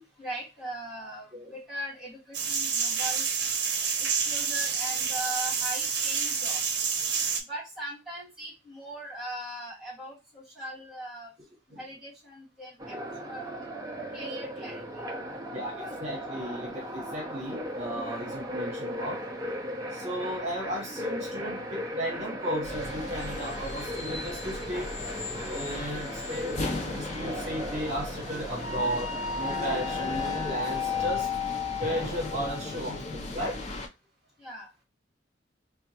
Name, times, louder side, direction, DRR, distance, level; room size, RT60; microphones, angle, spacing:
voice 1, 0.0-3.3 4.0-6.8 7.5-11.3 11.7-13.5 14.1-16.0 34.4-34.7, right 1 dB, 5° right, -5 dB, 1.7 m, -40 dB
sound 1, 2.3-7.4, right 6 dB, 65° right, 0.7 m, -28 dB
sound 2, 12.8-31.1, equal, 20° right, 0.6 m, -37 dB
voice 2, 15.5-19.2 19.9-24.9 25.5-29.1 29.3-31.3 31.8-33.7, equal, 40° right, -1 dB, 1.2 m, -35 dB
sound 3, 22.6-33.9, left 4 dB, 40° left, 0.5 m, -34 dB
4.2 x 2.3 x 2.8 m, 0.26 s
head